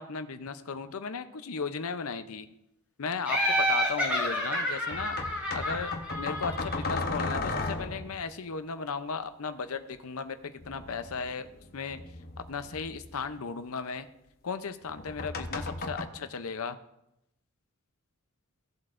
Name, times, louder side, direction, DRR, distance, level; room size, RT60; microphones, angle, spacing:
voice 1, 0.0-2.5 3.0-5.2 5.5-11.5 11.7-12.0 12.5-14.1 14.4-16.8, left 5 dB, 70° left, 10 dB, 0.7 m, -36 dB
Laughter, 3.3-6.9, equal, 5° right, 2.8 m, -29 dB
sound 1, 3.5-3.6 4.9-8.2 10.6-13.3 14.8-16.0, left 3 dB, 45° left, 0.9 m, -35 dB
16.0 x 7.8 x 2.6 m, 0.84 s
head